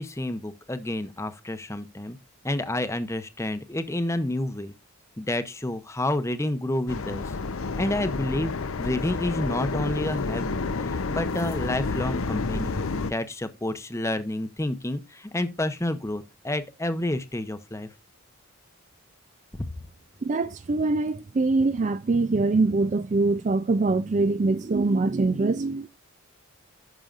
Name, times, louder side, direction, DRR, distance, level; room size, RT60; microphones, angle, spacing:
voice 1, 0.0-2.2 2.4-4.7 5.2-7.3 7.7-8.5 8.8-17.9 19.6-19.7, left 1 dB, 15° left, 0.7 m, -29 dB
sound 1, 6.9-13.1, left 4 dB, 70° left, 0.7 m, -30 dB
voice 2, 20.2-25.9, right 3 dB, 35° right, 0.3 m, -23 dB
14.0 x 6.4 x 2.5 m
head